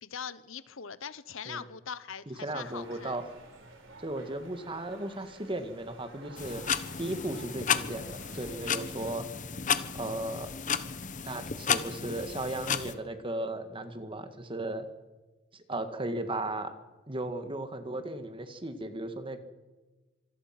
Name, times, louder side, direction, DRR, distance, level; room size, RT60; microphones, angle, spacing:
voice 1, 0.0-3.2, left 6 dB, 75° left, 16 dB, 0.9 m, -41 dB
voice 2, 2.3-3.2 4.0-6.6 7.0-9.3 9.9-10.5 11.2-14.9 15.7-16.7 17.1-19.4, right 1 dB, 25° right, 9 dB, 1.8 m, -36 dB
sound 1, 2.5-9.1, right 2 dB, 65° right, 3.9 m, -52 dB
sound 2, 6.4-12.9, left 7 dB, 40° left, 1.1 m, -33 dB
25.5 x 19.5 x 6.0 m, 1.3 s
head